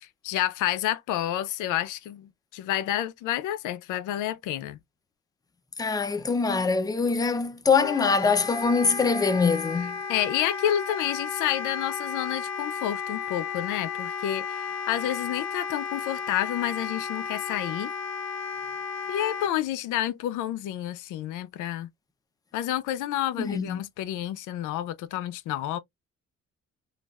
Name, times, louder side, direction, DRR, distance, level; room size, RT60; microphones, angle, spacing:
voice 1, 0.2-4.8 10.1-17.9 19.1-21.9 22.5-25.8, left 12 dB, 90° left, 0.5 m, -29 dB
voice 2, 5.8-10.0 23.4-23.8, left 5 dB, 10° left, 0.5 m, -24 dB
Wind instrument woodwind instrument, 7.8-19.5, left 5 dB, 65° left, 0.8 m, -34 dB
3.2 x 2.3 x 2.2 m
cardioid pair, 90°, 30 cm